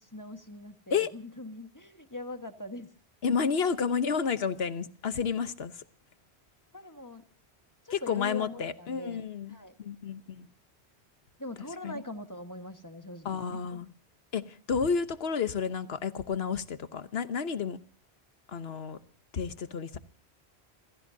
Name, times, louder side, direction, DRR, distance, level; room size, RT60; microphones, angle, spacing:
voice 1, 0.0-2.9 6.7-7.2 7.8-9.7 11.4-13.8, left 1 dB, 20° left, 1.4 m, -42 dB
voice 2, 3.2-5.8 7.9-10.5 11.8-12.0 13.2-13.9 14.3-17.8 18.5-19.0 19.3-20.0, left 6 dB, 70° left, 1.2 m, -31 dB
28.0 x 16.0 x 2.7 m
omnidirectional pair, 1.1 m